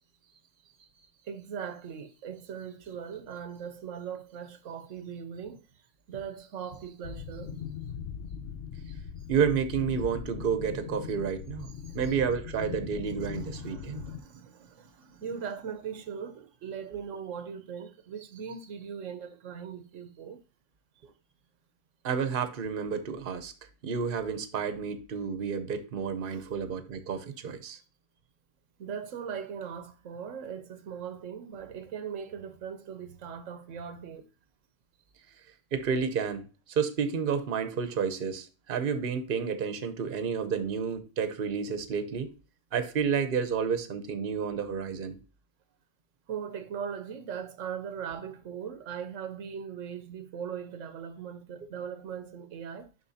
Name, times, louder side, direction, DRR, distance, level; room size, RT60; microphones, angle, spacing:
voice 1, 1.2-5.6 6.1-7.5 9.2-9.3 11.8-12.1 13.0-20.4 26.3-26.5 28.8-34.3 46.3-52.9, right 7 dB, 80° right, 1.1 m, -40 dB
sound 1, 7.0-14.2, left 7 dB, 60° left, 0.8 m, -40 dB
voice 2, 9.3-14.0 22.0-23.5 23.8-27.8 35.7-42.3 42.7-45.2, right 6 dB, 50° right, 1.0 m, -30 dB
6.9 x 5.6 x 2.7 m
omnidirectional pair, 1.3 m